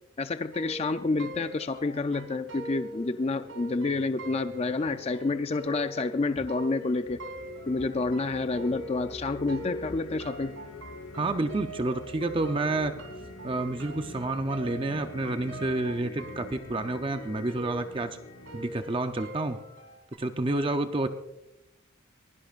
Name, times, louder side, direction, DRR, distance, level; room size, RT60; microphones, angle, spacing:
voice 1, 0.2-7.2 7.7-10.5, left 3 dB, 30° left, 9 dB, 0.4 m, -29 dB
sound 1, 0.5-9.2 9.5-20.2, right 2 dB, 65° right, 3.2 m, -43 dB
sound 2, 0.6-18.8, left 2 dB, 80° left, 1.1 m, -45 dB
voice 2, 11.2-13.0 13.4-18.2 18.5-19.6 20.2-21.1, right 2 dB, 25° right, 7 dB, 0.6 m, -29 dB
22.5 x 16.5 x 2.5 m, 0.92 s
head